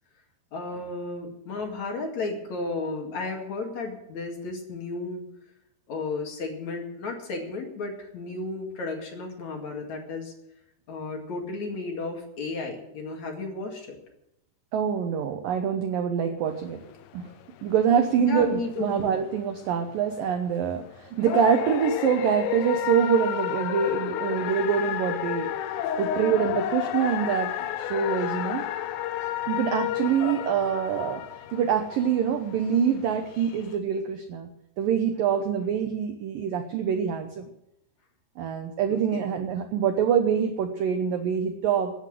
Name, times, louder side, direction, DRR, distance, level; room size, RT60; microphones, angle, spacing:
voice 1, 0.5-5.2 5.9-10.3 10.9-14.0 18.2-19.0 38.9-39.3, left 3 dB, 45° left, 2 dB, 2.7 m, -33 dB
voice 2, 14.7-16.8 17.1-17.3 17.6-25.5 26.0-28.7 29.5-31.2 31.5-34.5 34.8-37.5 38.4-41.9, right 7 dB, 85° right, 5 dB, 2.0 m, -25 dB
sound 1, 16.5-33.8, left 11 dB, 80° left, 3.2 m, -32 dB
18.5 x 8.0 x 7.7 m, 0.82 s
omnidirectional pair, 5.5 m